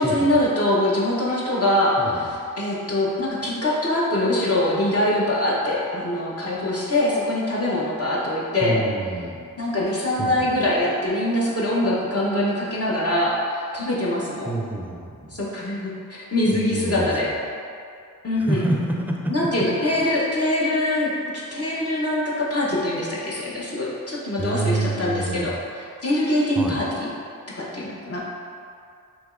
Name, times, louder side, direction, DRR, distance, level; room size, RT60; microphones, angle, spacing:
voice 1, 0.0-8.8 9.6-14.5 15.3-17.3 18.2-18.6 19.3-27.1 27.5-28.2, left 1 dB, 40° left, -6 dB, 0.9 m, -23 dB
voice 2, 2.0-2.3 8.6-9.4 10.2-10.6 14.5-15.3 16.4-17.3 18.4-19.5 19.8-20.2 24.4-25.6 26.6-26.8, right 2 dB, 5° right, -1 dB, 0.5 m, -28 dB
5.1 x 3.0 x 2.5 m, 2.4 s
cardioid pair, 50°, 35 cm